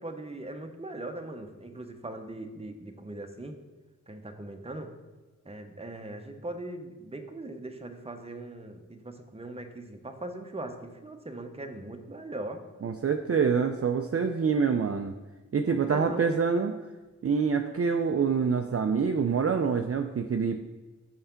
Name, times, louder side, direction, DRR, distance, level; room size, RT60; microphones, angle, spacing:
voice 1, 0.0-3.6 4.1-4.9 5.4-12.6 15.7-16.3, right 2 dB, 20° right, 5 dB, 0.7 m, -40 dB
voice 2, 12.8-15.2 15.5-16.7 17.2-20.6, right 6 dB, 50° right, 5 dB, 0.4 m, -26 dB
5.6 x 4.7 x 5.7 m, 1.2 s
wide cardioid pair, 55°, 31 cm